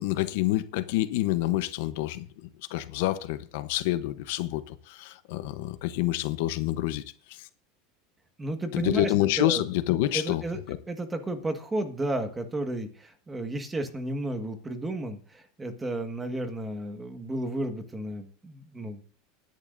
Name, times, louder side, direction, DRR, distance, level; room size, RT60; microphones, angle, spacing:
voice 1, 0.0-7.0 7.3-7.5 8.7-10.4 10.7-10.8, left 15 dB, 75° left, 0.8 m, -28 dB
voice 2, 8.4-9.6 10.1-10.6 10.9-19.0, right 1 dB, 15° right, 1.5 m, -33 dB
20.0 x 10.5 x 2.6 m
supercardioid pair, 140°, 0 cm